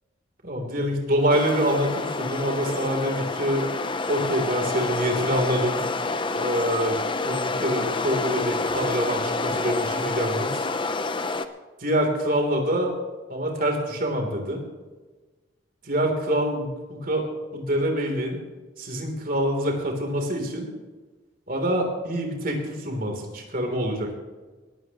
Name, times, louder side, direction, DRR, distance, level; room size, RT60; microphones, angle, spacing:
voice 1, 0.4-3.7 4.1-5.8 6.3-10.6 11.8-12.9 13.3-14.6 15.8-17.2 17.5-18.4 18.8-20.7 21.5-24.1, equal, 45° right, 2 dB, 3.4 m, -26 dB
sound 1, 1.3-11.4, left 3 dB, 25° left, 0.7 m, -28 dB
19.5 x 15.5 x 3.1 m, 1.3 s
head